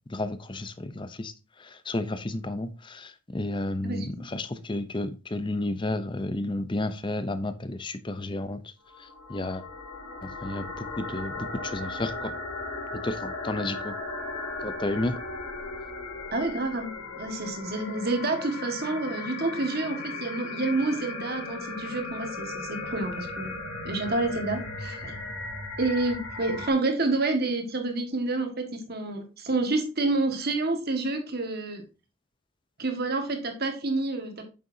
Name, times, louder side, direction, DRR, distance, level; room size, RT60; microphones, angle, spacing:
voice 1, 0.1-1.3 1.6-8.6 9.0-9.6 10.2-12.3 13.0-13.9 14.6-15.1, left 2 dB, 20° left, 12 dB, 0.6 m, -32 dB
sound 1, 8.8-26.7, left 3 dB, 90° left, 2.5 m, -37 dB
voice 2, 16.3-23.6 23.8-25.2 25.8-31.8 32.8-34.4, right 2 dB, 45° right, 5 dB, 1.7 m, -28 dB
8.8 x 6.7 x 2.7 m, 0.31 s
head